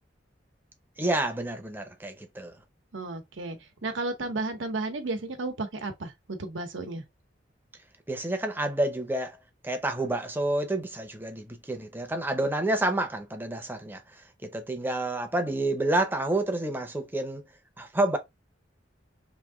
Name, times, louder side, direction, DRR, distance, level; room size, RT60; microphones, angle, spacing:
voice 1, 1.0-2.5 8.1-9.4 9.6-14.0 14.4-17.4 17.8-18.2, right 1 dB, 10° right, 0.6 m, -29 dB
voice 2, 2.9-7.0, right 2 dB, 90° right, 0.8 m, -33 dB
3.1 x 2.7 x 3.5 m
head